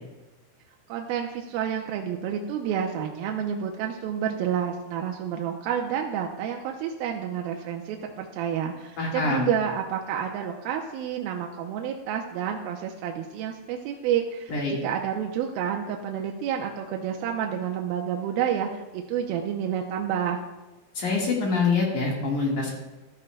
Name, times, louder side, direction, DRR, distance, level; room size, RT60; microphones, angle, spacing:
voice 1, 0.9-20.4, right 9 dB, 80° right, 1 dB, 2.4 m, -29 dB
voice 2, 9.0-9.5 14.5-14.8 21.0-22.7, left 4 dB, 60° left, -2 dB, 2.7 m, -25 dB
13.5 x 12.5 x 2.2 m, 1.1 s
omnidirectional pair, 4.6 m